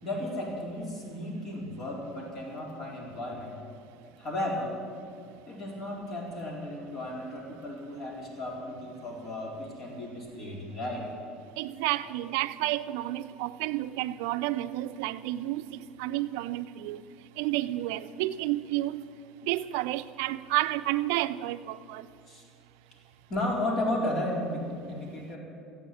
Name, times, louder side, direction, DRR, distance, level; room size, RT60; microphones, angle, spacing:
voice 1, 0.0-3.6 4.2-4.8 5.5-11.1 12.1-12.2 22.3-22.4 23.3-25.4, left 1 dB, 45° left, 4.2 m, -34 dB
voice 2, 11.6-17.0 17.4-19.0 19.5-22.0, right 16 dB, 80° right, 0.5 m, -31 dB
14.5 x 8.5 x 9.2 m
supercardioid pair, 100°, 0 cm